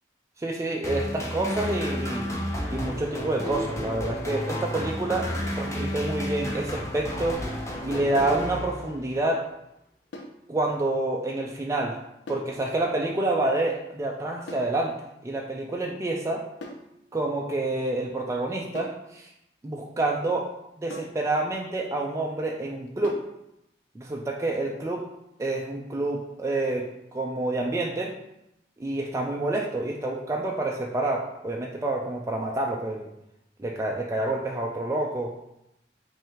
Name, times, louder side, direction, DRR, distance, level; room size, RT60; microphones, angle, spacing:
voice 1, 0.4-2.3 2.7-5.3 5.6-7.5 7.8-9.4 10.5-12.0 12.3-14.9 15.2-16.4 17.1-19.3 19.6-20.5 20.8-23.2 24.0-25.0 25.4-26.8 27.1-28.1 28.8-33.1 33.6-35.3, right 2 dB, 15° right, -1 dB, 0.4 m, -28 dB
sound 1, 0.8-9.2, equal, 15° left, 0.7 m, -31 dB
sound 2, 7.9-8.2 10.1-10.4 12.3-12.6 14.5-14.8 16.6-16.9 18.7-19.1 20.9-21.2 23.0-23.3, left 1 dB, 90° left, 0.6 m, -41 dB
5.4 x 2.6 x 3.6 m, 0.84 s
head